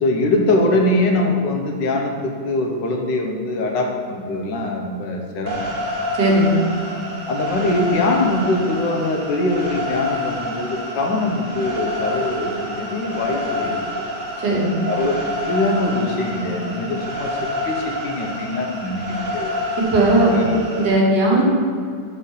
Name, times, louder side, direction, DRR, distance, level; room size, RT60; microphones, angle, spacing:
voice 1, 0.0-5.7 7.3-14.1 14.9-15.1 15.4-19.5 20.3-20.6, left 2 dB, 75° left, 2 dB, 1.6 m, -22 dB
sound 1, 5.5-20.9, left 1 dB, 30° right, 1.3 m, -28 dB
voice 2, 6.2-6.6 14.4-14.8 19.9-20.4 20.7-21.4, right 1 dB, 75° right, -3 dB, 2.1 m, -16 dB
6.5 x 5.3 x 5.5 m, 2.2 s
omnidirectional pair, 1.9 m